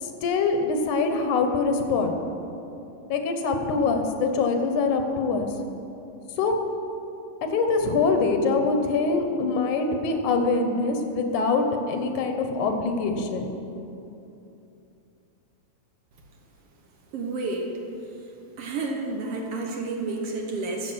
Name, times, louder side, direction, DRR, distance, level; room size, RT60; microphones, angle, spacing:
voice 1, 0.0-2.2 3.1-5.5 6.4-6.5 7.5-13.5, left 4 dB, 85° left, 5 dB, 2.5 m, -24 dB
voice 2, 17.1-17.7 18.6-20.9, right 3 dB, 65° right, 1 dB, 1.8 m, -30 dB
13.5 x 7.5 x 6.3 m, 2.8 s
omnidirectional pair, 3.4 m